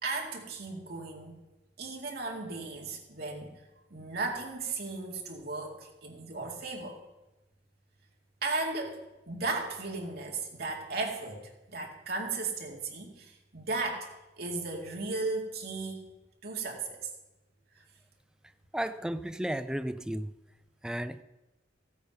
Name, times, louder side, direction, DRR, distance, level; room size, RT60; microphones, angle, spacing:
voice 1, 0.0-1.4 1.8-3.6 3.9-7.0 8.4-14.1 14.4-16.1 16.4-17.0 17.8-17.9, right 3 dB, 55° right, 2.2 m, -36 dB
voice 2, 18.7-20.3 20.8-21.2, right 1 dB, 5° right, 0.4 m, -33 dB
14.5 x 8.6 x 5.4 m
head